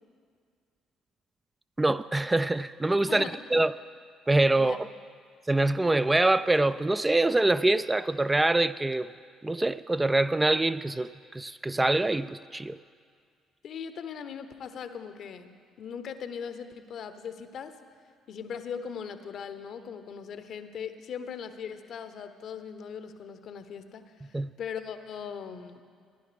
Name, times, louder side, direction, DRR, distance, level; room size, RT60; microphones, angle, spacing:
voice 1, 1.8-3.2 3.5-3.7 4.3-4.9 5.5-9.1 9.4-12.8 24.3-24.5, right 2 dB, 15° right, 0.3 m, -25 dB
voice 2, 13.6-17.8 18.3-25.8, left 7 dB, 60° left, 0.8 m, -39 dB
15.0 x 10.5 x 5.1 m
hypercardioid pair, 50°, 0 cm